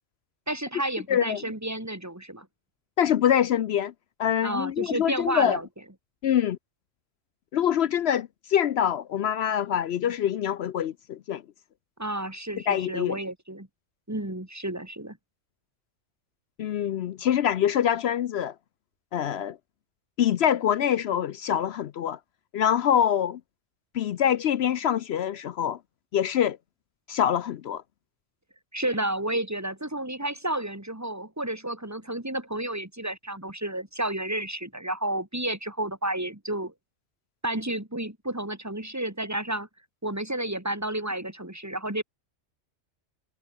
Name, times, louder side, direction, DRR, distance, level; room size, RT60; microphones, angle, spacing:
voice 1, 0.5-2.5 4.4-5.7 12.0-13.7 14.1-15.2 28.7-36.7 37.4-39.7 40.0-42.0, right 1 dB, 10° right, 2.6 m, -31 dB
voice 2, 1.1-1.4 3.0-3.9 4.2-5.6 6.2-6.6 7.5-11.4 12.7-13.2 16.6-18.5 19.1-19.6 20.2-22.2 22.5-23.4 23.9-25.8 26.1-26.6 27.1-27.8, left 9 dB, 65° left, 0.8 m, -25 dB
omnidirectional pair, 1.3 m